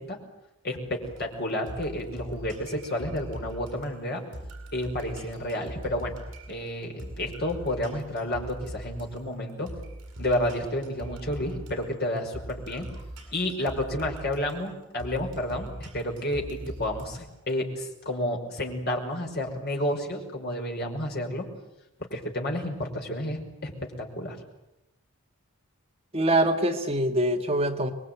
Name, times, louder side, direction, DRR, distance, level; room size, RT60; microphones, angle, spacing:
voice 1, 0.6-4.2 4.7-6.1 6.5-9.7 10.2-12.9 13.3-21.5 22.1-23.7 24.0-24.4, left 1 dB, 45° left, 2 dB, 5.5 m, -30 dB
sound 1, 1.0-17.5, right 1 dB, 55° right, 7.9 m, -42 dB
voice 2, 26.1-27.9, right 1 dB, 25° right, 4 dB, 1.7 m, -24 dB
25.5 x 22.0 x 9.4 m, 0.89 s
head